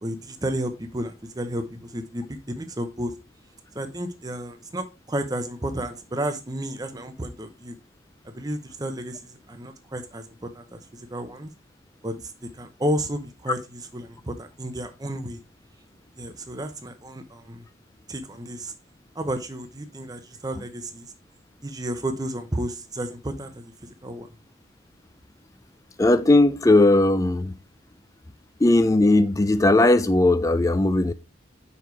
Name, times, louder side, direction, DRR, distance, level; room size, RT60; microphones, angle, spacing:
voice 1, 0.0-3.1 3.7-7.7 8.2-11.5 12.0-12.3 12.6-15.4 16.2-17.6 18.1-18.7 19.1-21.1 21.6-24.3, right 1 dB, 20° right, 0.8 m, -32 dB
voice 2, 26.0-27.5 28.6-31.1, left 2 dB, 15° left, 0.4 m, -18 dB
5.5 x 4.7 x 4.6 m
head